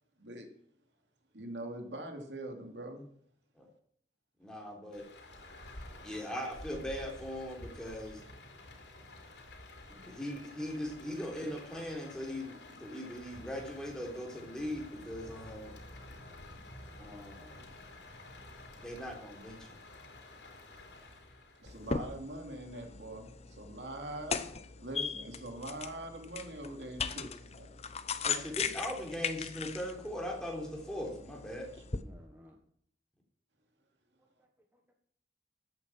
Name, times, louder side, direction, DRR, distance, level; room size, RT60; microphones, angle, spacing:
voice 1, 0.2-0.5 1.3-3.0 21.6-24.5 24.8-27.7, right 1 dB, 85° right, 4 dB, 2.8 m, -43 dB
voice 2, 4.4-5.0 6.0-8.2 9.9-15.8 17.0-17.6 18.8-19.8 28.2-31.7, equal, 5° left, 0 dB, 3.7 m, -40 dB
Rain, 4.9-21.9, left 2 dB, 80° left, 3.4 m, -51 dB
sound 1, 21.7-32.0, left 5 dB, 40° left, 0.8 m, -39 dB
voice 3, 32.0-32.6 34.4-34.9, equal, 10° right, 1 dB, 1.4 m, -58 dB
14.0 x 8.7 x 6.0 m, 0.66 s
head